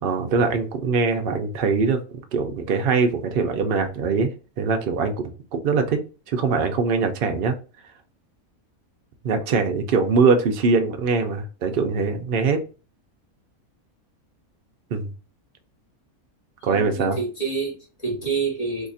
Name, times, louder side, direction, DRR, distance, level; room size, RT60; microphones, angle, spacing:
voice 1, 0.0-4.3 4.6-6.0 6.3-7.6 9.2-12.6 14.9-15.1 16.6-17.2, right 4 dB, 60° right, 5 dB, 0.5 m, -22 dB
voice 2, 16.6-18.9, right 4 dB, 30° left, -2 dB, 1.0 m, -28 dB
2.8 x 2.4 x 4.0 m, 0.34 s
omnidirectional pair, 1.5 m